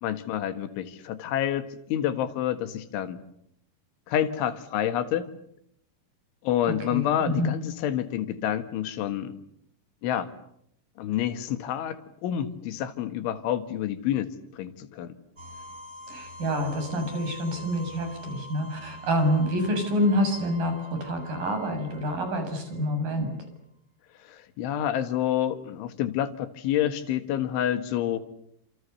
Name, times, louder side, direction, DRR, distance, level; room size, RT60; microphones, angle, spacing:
voice 1, 0.0-3.2 4.1-5.3 6.4-9.4 10.0-10.3 11.0-15.1 24.3-28.2, left 11 dB, 90° left, 9 dB, 4.2 m, -28 dB
voice 2, 6.9-7.5 16.1-23.3, equal, 45° right, 6 dB, 8.7 m, -27 dB
sound 1, 15.4-23.1, left 1 dB, 15° right, 6.5 m, -45 dB
30.0 x 28.0 x 6.9 m, 0.75 s
omnidirectional pair, 5.3 m